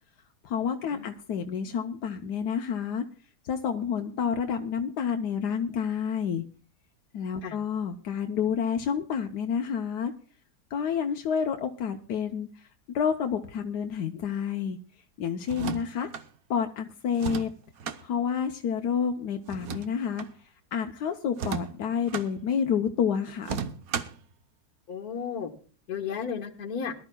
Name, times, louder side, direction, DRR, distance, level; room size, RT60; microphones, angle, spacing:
voice 1, 0.4-3.0 3.4-6.4 7.1-10.1 10.7-14.8 15.2-16.1 16.5-17.5 18.0-20.2 20.7-23.6, left 7 dB, 90° left, 5 dB, 1.4 m, -29 dB
sound 1, 15.4-16.3 17.1-18.0 19.5-20.3 21.3-22.3 23.4-24.2, right 7 dB, 65° right, 1.3 m, -34 dB
voice 2, 24.9-25.5 25.9-26.9, left 7 dB, 70° left, 4 dB, 1.9 m, -34 dB
22.0 x 12.0 x 2.2 m, 0.41 s
omnidirectional pair, 1.7 m